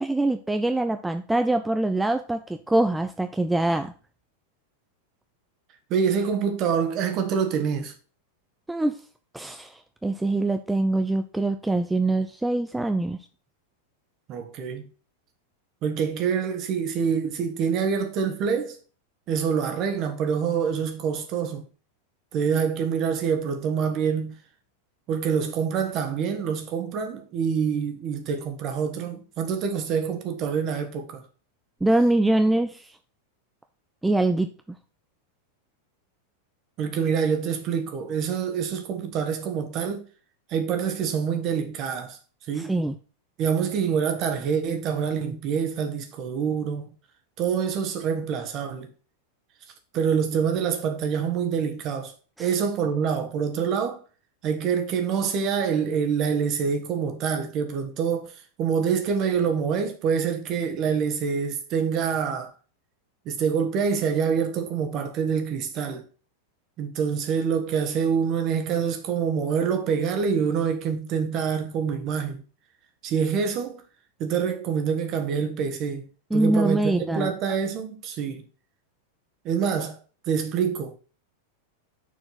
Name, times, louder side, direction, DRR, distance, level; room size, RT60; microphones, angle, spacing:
voice 1, 0.0-3.9 8.7-9.0 9.3-13.2 31.8-32.9 34.0-34.5 42.6-43.0 52.4-52.5 76.3-77.3, right 2 dB, 5° right, 0.4 m, -24 dB
voice 2, 5.9-7.9 14.3-14.9 15.8-18.8 19.3-21.7 22.3-24.3 25.1-31.2 36.8-40.0 40.5-42.2 42.5-42.7 43.4-46.9 47.4-48.9 49.9-52.1 52.4-54.0 54.4-62.5 63.2-66.0 66.8-72.4 73.0-73.8 74.2-78.4 79.4-80.0 80.3-80.9, right 6 dB, 35° right, 1.5 m, -26 dB
6.4 x 4.5 x 5.6 m
figure-of-eight pair, 90°, 0 cm